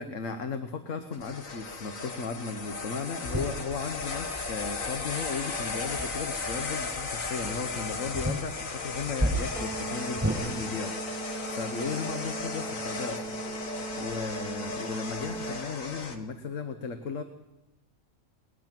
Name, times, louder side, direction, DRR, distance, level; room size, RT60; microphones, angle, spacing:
voice 1, 0.0-11.3 11.5-13.2 13.9-17.2, left 5 dB, 75° left, 8 dB, 1.5 m, -36 dB
sound 1, 1.1-16.2, left 4 dB, 90° left, 2.1 m, -36 dB
sound 2, 3.2-10.4, right 1 dB, 10° right, 6.2 m, -36 dB
sound 3, 9.5-15.6, right 4 dB, 5° left, 0.8 m, -39 dB
21.5 x 20.0 x 6.0 m, 1.0 s
omnidirectional pair, 1.4 m